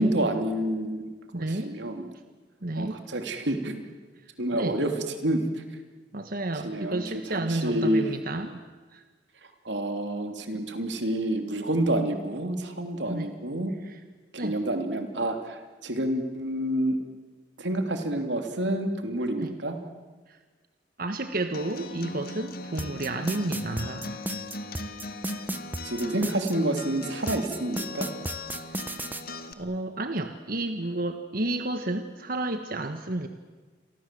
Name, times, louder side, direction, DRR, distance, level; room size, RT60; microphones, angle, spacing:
voice 1, 0.0-2.1 2.7-3.8 4.4-4.9 5.2-5.6 6.6-8.1 9.6-13.7 14.3-17.0 17.6-19.8 25.8-28.1, right 1 dB, 90° right, 5 dB, 3.2 m, -28 dB
voice 2, 1.3-1.7 2.6-3.0 4.5-4.8 6.1-8.6 8.9-9.0 10.5-10.6 13.1-13.3 13.8-14.0 14.4-14.6 19.3-19.5 21.0-24.2 28.7-29.1 29.6-33.3, right 2 dB, 55° right, 7 dB, 1.4 m, -31 dB
Acoustic guitar, 21.5-29.5, left 2 dB, 55° left, 1.9 m, -39 dB
sound 1, 22.8-26.5 27.3-29.2, right 1 dB, 10° right, 1.1 m, -33 dB
29.5 x 24.0 x 7.7 m, 1.4 s
head